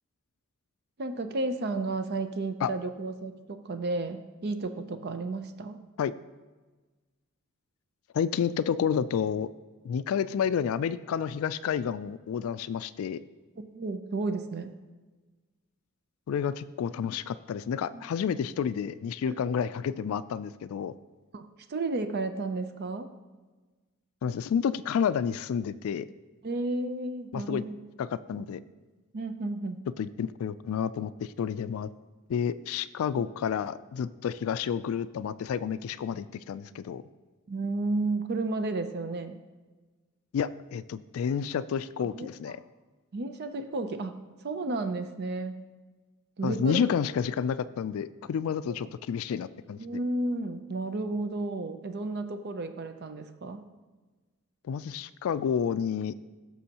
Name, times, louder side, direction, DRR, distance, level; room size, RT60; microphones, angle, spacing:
voice 1, 1.0-5.8 13.6-14.7 17.9-18.0 19.3-19.4 21.3-23.1 26.4-27.8 28.3-28.4 29.1-29.8 33.2-33.3 37.5-39.4 42.0-42.3 43.1-45.5 46.4-46.8 49.8-53.6, right 2 dB, 50° right, 8 dB, 0.5 m, -32 dB
voice 2, 8.1-9.5 9.8-13.2 16.3-20.9 24.2-26.1 27.3-27.6 28.0-28.6 30.0-31.9 32.3-37.0 40.3-42.6 46.4-49.8 54.7-56.1, left 7 dB, 70° left, 16 dB, 0.3 m, -30 dB
15.0 x 6.2 x 2.9 m, 1.3 s
head